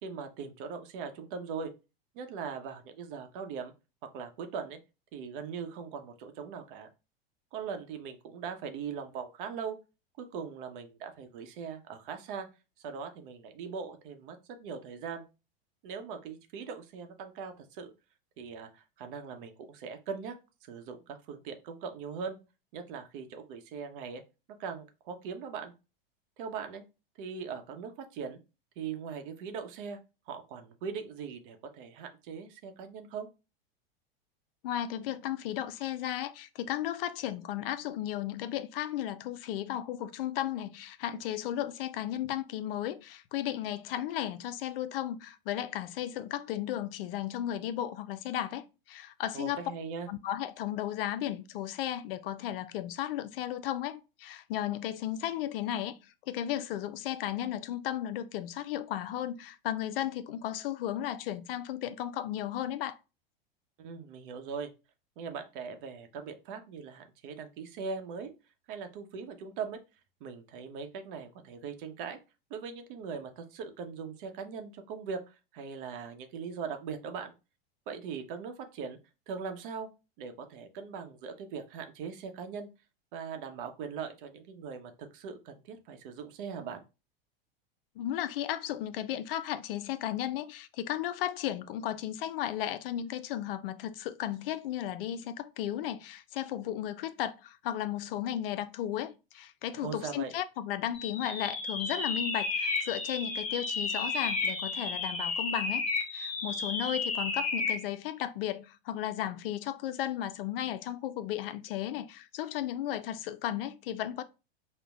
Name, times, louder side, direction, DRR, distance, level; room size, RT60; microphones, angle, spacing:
voice 1, 0.0-1.7 2.1-3.7 4.0-4.8 5.1-6.9 7.5-9.8 10.2-12.5 12.8-15.2 15.8-17.9 18.4-22.4 22.7-24.2 24.6-25.7 26.4-26.8 27.2-28.4 28.8-30.0 30.3-33.3 49.3-50.1 63.8-64.7 65.2-68.3 68.7-69.8 70.2-72.2 72.5-77.3 77.9-79.0 79.3-79.9 80.2-82.7 83.1-86.8 99.8-100.3, right 6 dB, 60° right, 0.8 m, -40 dB
voice 2, 34.6-49.7 50.1-56.0 56.3-63.0 88.0-105.8 106.1-114.2, left 12 dB, 65° left, 0.5 m, -35 dB
sound 1, 100.9-107.9, left 3 dB, 25° left, 0.9 m, -32 dB
5.2 x 2.2 x 2.3 m
hypercardioid pair, 110°, 30 cm